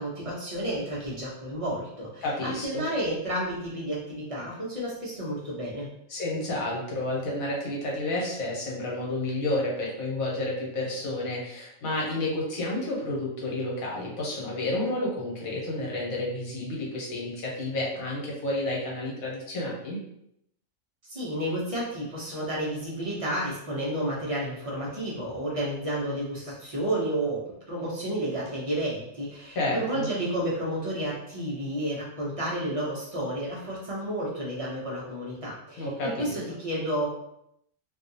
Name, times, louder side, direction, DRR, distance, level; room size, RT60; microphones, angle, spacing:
voice 1, 0.0-5.9 21.0-27.4 27.7-37.1, right 1 dB, 35° right, -6 dB, 0.6 m, -31 dB
voice 2, 2.2-2.8 6.1-20.0 29.5-30.1 35.8-36.3, left 2 dB, 85° left, -3 dB, 1.3 m, -30 dB
2.6 x 2.3 x 2.7 m, 0.77 s
omnidirectional pair, 1.4 m